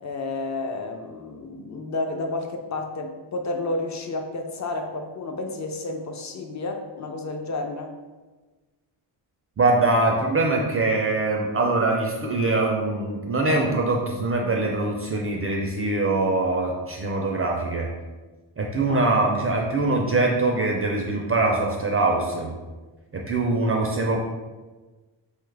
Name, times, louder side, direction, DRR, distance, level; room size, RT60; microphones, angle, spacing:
voice 1, 0.0-7.9 18.9-19.0, left 2 dB, 40° left, 4 dB, 0.5 m, -31 dB
voice 2, 9.6-17.9 18.6-22.5 23.1-24.2, right 2 dB, 30° right, 0 dB, 0.3 m, -23 dB
3.1 x 2.3 x 3.2 m, 1.2 s
cardioid pair, 80°, 49 cm